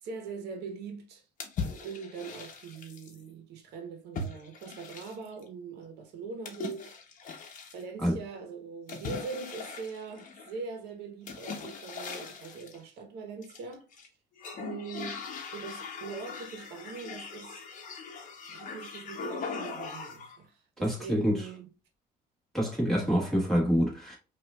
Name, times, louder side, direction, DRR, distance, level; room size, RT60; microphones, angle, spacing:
voice 1, 0.0-1.2 1.8-7.0 7.7-13.9 14.6-15.2 15.5-17.7 18.5-21.7, right 5 dB, 80° right, 0.9 m, -42 dB
sound 1, 1.4-3.2 4.1-5.4 6.4-7.8 8.9-10.6 11.3-12.8 13.4-14.1 14.4-20.4, left 4 dB, 50° left, 0.9 m, -40 dB
voice 2, 20.8-21.5 22.5-24.2, equal, ahead, 1.5 m, -26 dB
4.9 x 2.5 x 2.2 m
cardioid pair, 110°, 17 cm